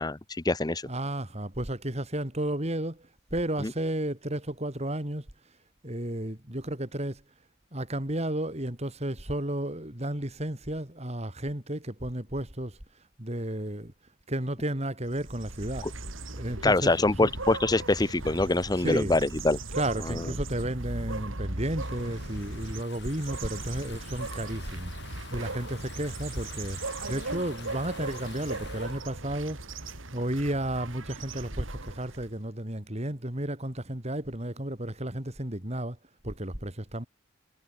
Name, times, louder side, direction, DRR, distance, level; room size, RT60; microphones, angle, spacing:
voice 1, 0.0-0.9 3.6-3.7 15.8-15.9 16.6-19.6 20.1-20.2, left 2 dB, 20° left, 0.7 m, -25 dB
voice 2, 0.8-5.3 5.8-7.2 7.7-12.8 13.2-13.9 14.3-15.9 16.3-17.3 18.8-19.2 19.7-25.0 25.3-26.8 27.1-36.0 36.2-37.1, right 1 dB, 35° right, 3.5 m, -33 dB
sound 1, 15.1-32.4, right 2 dB, 80° right, 4.0 m, -38 dB
Stream / Ocean, 21.8-29.0, left 5 dB, 60° left, 7.4 m, -48 dB
head